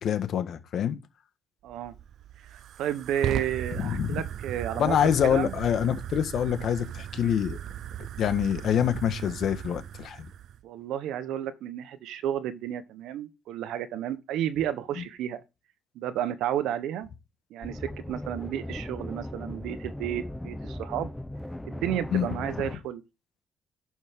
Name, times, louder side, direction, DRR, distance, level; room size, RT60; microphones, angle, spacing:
voice 1, 0.0-1.0 3.8-4.2 4.7-7.6 8.2-10.3 15.0-15.1 22.1-22.3, left 9 dB, 70° left, 1.5 m, -26 dB
voice 2, 1.6-1.9 2.4-5.0 5.2-5.5 10.6-15.4 15.9-17.1 17.5-21.1 21.7-23.0, right 10 dB, 90° right, 1.2 m, -32 dB
Fire, 1.7-10.6, right 10 dB, 70° right, 0.5 m, -37 dB
sound 1, 17.6-22.8, left 1 dB, 5° left, 1.0 m, -38 dB
11.5 x 6.3 x 3.7 m
cardioid pair, 90°, 0 cm